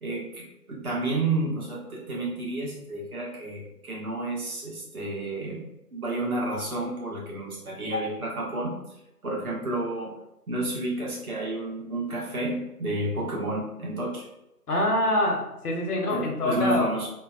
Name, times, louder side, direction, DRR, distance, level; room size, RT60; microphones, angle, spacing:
voice 1, 0.0-5.6 5.9-8.7 9.2-10.1 10.5-14.3 16.1-17.1, right 2 dB, 65° right, -4 dB, 1.1 m, -30 dB
voice 2, 14.7-16.9, left 1 dB, 70° left, 0 dB, 0.9 m, -25 dB
2.8 x 2.2 x 2.3 m, 0.90 s
figure-of-eight pair, 155°, 47 cm